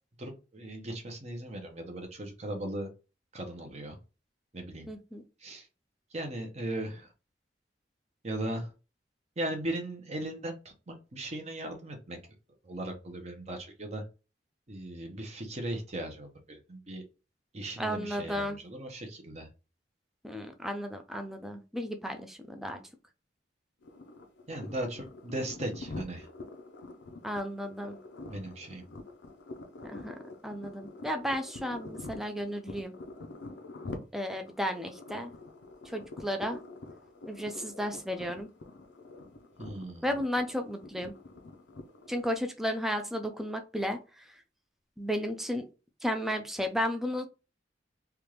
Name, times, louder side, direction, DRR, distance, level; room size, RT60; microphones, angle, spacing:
voice 1, 0.2-2.9 3.3-4.0 4.5-4.9 5.4-5.7 6.1-7.1 8.2-8.7 9.4-12.2 12.6-14.0 14.7-17.0 17.5-19.5 24.5-26.3 28.3-28.8 39.6-40.1, right 1 dB, 40° right, 3 dB, 0.8 m, -38 dB
voice 2, 4.9-5.2 17.8-18.6 20.2-22.8 27.2-28.0 29.8-30.1 30.4-32.9 34.1-35.3 35.9-36.6 37.3-38.5 40.0-41.1 42.1-44.0 45.0-45.6 46.0-47.2, equal, ahead, 5 dB, 0.4 m, -33 dB
sound 1, 23.8-42.4, left 2 dB, 80° left, 0.6 m, -46 dB
3.4 x 2.4 x 3.0 m, 0.31 s
head